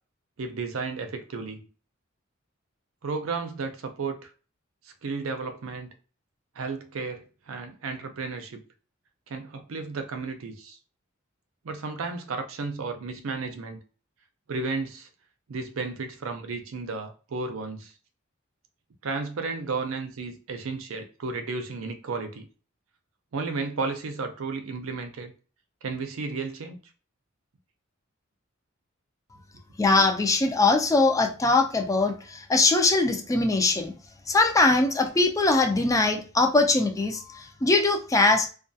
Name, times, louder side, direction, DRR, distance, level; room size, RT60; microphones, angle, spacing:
voice 1, 0.4-1.7 3.0-4.3 5.0-5.9 6.6-8.6 9.3-10.8 11.6-13.8 14.5-15.1 15.5-17.9 19.0-22.5 23.3-25.3 25.8-26.8, right 4 dB, 90° right, 0.5 m, -33 dB
voice 2, 29.8-33.9 34.3-38.5, left 3 dB, 15° left, 0.4 m, -22 dB
2.3 x 2.3 x 2.6 m
head